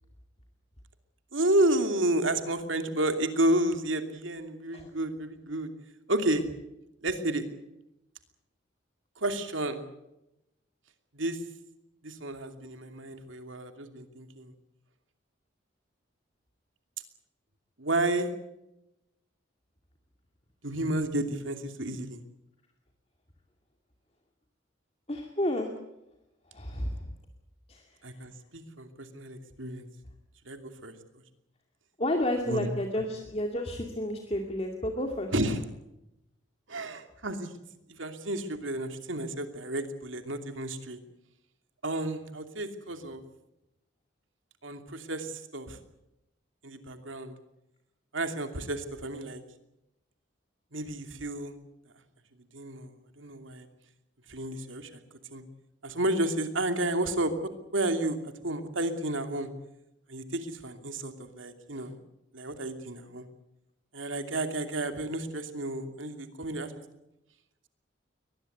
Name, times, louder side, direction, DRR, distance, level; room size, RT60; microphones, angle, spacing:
voice 1, 1.3-5.7 6.1-6.5 7.0-7.4 9.2-9.8 11.1-11.4 12.0-14.5 17.8-18.3 20.6-22.2 28.0-29.9 30.5-31.2 32.5-32.7 35.3-35.6 36.7-37.5 38.0-41.0 41.8-43.2 44.6-45.8 46.6-47.4 48.1-49.4 50.7-51.5 52.5-53.7 54.3-55.0 55.3-55.4 55.8-57.3 57.7-59.5 60.1-62.0 62.3-63.3 63.9-66.7, right 1 dB, 75° right, 7 dB, 2.8 m, -31 dB
voice 2, 25.1-25.7 26.5-27.0 27.7-28.0 32.0-35.3, left 1 dB, 30° left, 2 dB, 2.4 m, -31 dB
22.5 x 20.0 x 8.1 m, 0.90 s
head